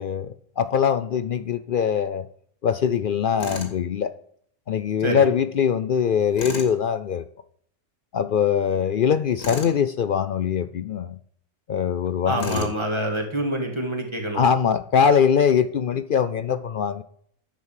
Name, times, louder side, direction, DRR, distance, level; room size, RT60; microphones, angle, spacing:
voice 1, 0.0-2.3 2.6-4.1 4.7-7.2 8.1-11.2 11.7-12.7 14.4-17.0, left 7 dB, 80° left, 13 dB, 0.4 m, -22 dB
Tools, 3.4-3.8 6.3-6.7 9.4-9.8 12.4-12.8, left 4 dB, 60° left, 2.6 m, -33 dB
voice 2, 12.2-14.4, right 1 dB, 20° right, 2 dB, 2.3 m, -26 dB
11.5 x 6.2 x 7.5 m, 0.63 s
omnidirectional pair, 1.6 m